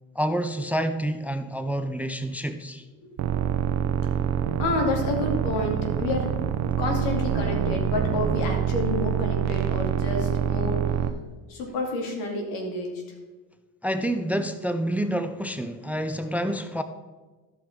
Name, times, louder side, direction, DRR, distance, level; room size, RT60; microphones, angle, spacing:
voice 1, 0.2-2.8 13.8-16.8, right 1 dB, 5° right, 10 dB, 0.5 m, -28 dB
voice 2, 3.0-3.3 4.6-6.3 6.8-10.9 11.5-13.0, left 2 dB, 80° left, 2 dB, 2.6 m, -29 dB
sound 1, 3.2-11.1, right 9 dB, 50° right, 0.9 m, -26 dB
13.5 x 5.7 x 4.5 m, 1.3 s
supercardioid pair, 105°, 36 cm